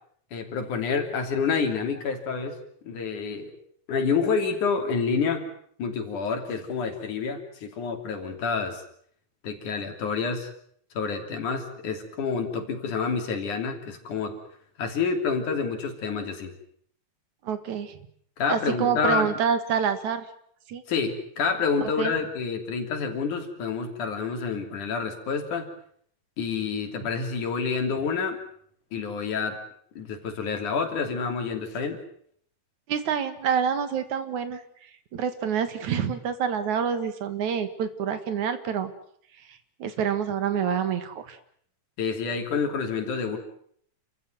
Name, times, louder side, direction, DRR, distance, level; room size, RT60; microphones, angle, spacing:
voice 1, 0.3-2.6 2.8-3.5 3.9-5.4 5.8-8.8 9.4-10.5 10.9-14.4 14.8-16.5 18.4-19.3 20.9-25.7 26.4-28.4 28.9-29.6 30.0-32.0 42.0-43.4, left 5 dB, 80° left, 5 dB, 4.5 m, -28 dB
voice 2, 17.4-18.0 18.5-20.3 20.7-20.8 21.8-22.1 32.9-34.6 35.1-38.9 39.5-41.4, right 7 dB, 75° right, 11 dB, 3.1 m, -27 dB
28.5 x 15.0 x 9.4 m, 0.65 s
omnidirectional pair, 3.5 m